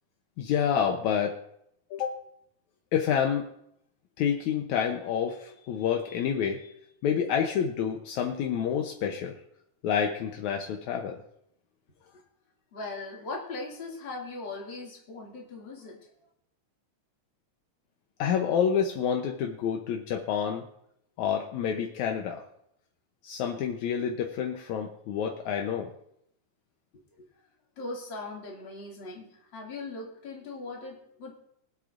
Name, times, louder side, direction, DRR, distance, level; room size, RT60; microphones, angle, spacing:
voice 1, 0.4-1.3 1.9-2.2 2.9-3.5 4.2-6.7 7.0-9.3 9.8-11.2 18.2-20.6 21.2-22.4 23.2-25.9, left 8 dB, 75° left, 2 dB, 2.2 m, -28 dB
voice 2, 12.7-16.0 27.8-31.3, left 3 dB, 40° left, -3 dB, 2.9 m, -39 dB
24.5 x 8.2 x 2.6 m, 0.75 s
omnidirectional pair, 3.4 m